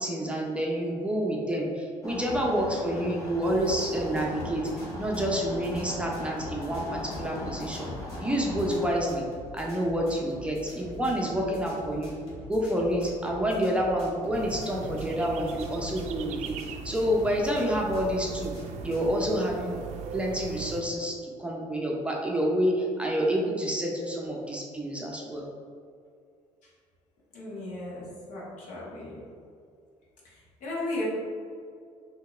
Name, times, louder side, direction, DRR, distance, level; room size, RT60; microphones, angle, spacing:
voice 1, 0.0-4.7 5.0-7.9 8.2-9.2 9.5-12.1 12.5-16.6 16.8-18.5 18.8-19.8 20.1-25.5, equal, 10° right, -2 dB, 0.5 m, -28 dB
sound 1, 2.0-8.9, left 1 dB, 25° left, 0.8 m, -39 dB
sound 2, 3.4-19.2, left 1 dB, 45° left, 1.4 m, -45 dB
sound 3, 14.3-20.8, right 6 dB, 65° right, 0.4 m, -40 dB
voice 2, 27.3-29.2 30.2-31.1, left 2 dB, 75° left, -5 dB, 1.3 m, -36 dB
4.9 x 2.8 x 2.4 m, 2.3 s
cardioid pair, 115°, 13 cm